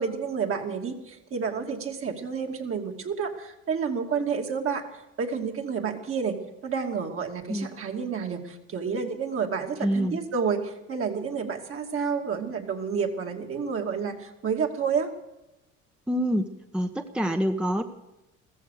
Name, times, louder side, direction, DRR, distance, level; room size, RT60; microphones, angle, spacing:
voice 1, 0.0-6.4 6.6-15.1, right 6 dB, 45° right, 3 dB, 2.6 m, -30 dB
voice 2, 9.8-10.2 16.1-16.5 16.7-17.8, equal, 5° right, 6 dB, 1.1 m, -26 dB
14.5 x 14.5 x 6.5 m, 0.92 s
supercardioid pair, 80°, 30 cm